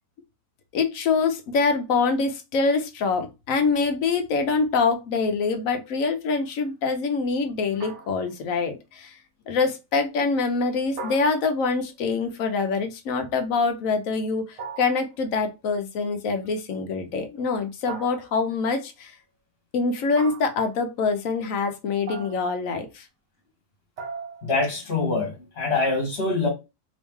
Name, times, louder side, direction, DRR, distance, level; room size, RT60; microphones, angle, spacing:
voice 1, 0.7-9.2 9.5-19.2 19.7-23.0, left 4 dB, 65° left, 1.1 m, -25 dB
sound 1, 7.8-8.4 11.0-11.8 14.6-15.2 17.9-18.6 20.1-20.7 22.1-22.6 24.0-24.6, right 4 dB, 55° right, 1.0 m, -38 dB
voice 2, 24.4-26.5, left 3 dB, 40° left, 1.5 m, -24 dB
3.1 x 3.0 x 3.5 m
omnidirectional pair, 1.7 m